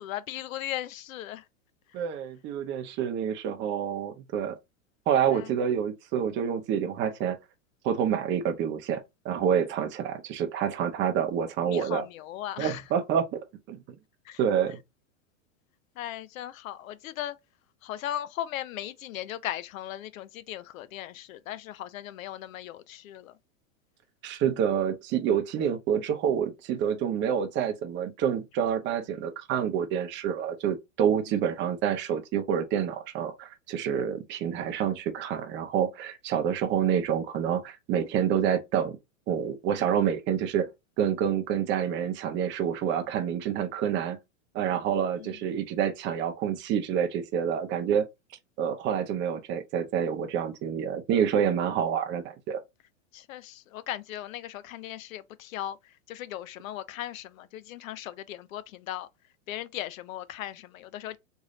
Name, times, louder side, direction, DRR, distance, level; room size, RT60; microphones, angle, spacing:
voice 1, 0.0-1.5 5.3-5.5 11.6-12.8 14.3-14.4 16.0-17.4 17.8-23.3 45.2-45.4 53.1-59.1 59.5-61.2, left 12 dB, 80° left, 0.6 m, -37 dB
voice 2, 1.9-4.6 5.1-7.4 7.8-12.0 12.6-13.8 14.4-14.8 24.2-39.0 39.3-40.7 41.0-44.2 44.5-48.1 48.6-52.6, right 8 dB, 30° right, 0.6 m, -28 dB
3.2 x 2.7 x 3.7 m
hypercardioid pair, 125°, 40 cm